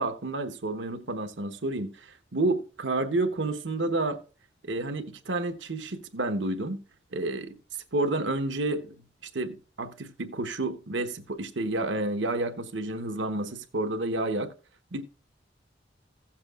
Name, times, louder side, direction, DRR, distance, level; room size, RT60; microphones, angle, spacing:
voice 1, 0.0-4.2 4.6-6.8 7.1-7.6 7.9-8.9 9.3-14.5 14.9-15.0, right 2 dB, 80° right, 1.1 m, -30 dB
16.0 x 7.4 x 2.4 m
head